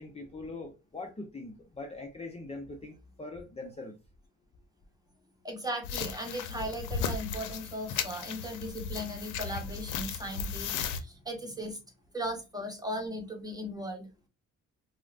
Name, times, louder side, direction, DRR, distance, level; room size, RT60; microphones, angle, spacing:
voice 1, 0.0-4.0, left 2 dB, 20° left, 0.6 m, -42 dB
voice 2, 5.4-11.8 12.1-14.1, equal, 10° right, 1.1 m, -37 dB
sound 1, 5.8-11.0, left 6 dB, 85° left, 0.6 m, -36 dB
4.7 x 2.1 x 2.4 m
cardioid pair, 90°, 30 cm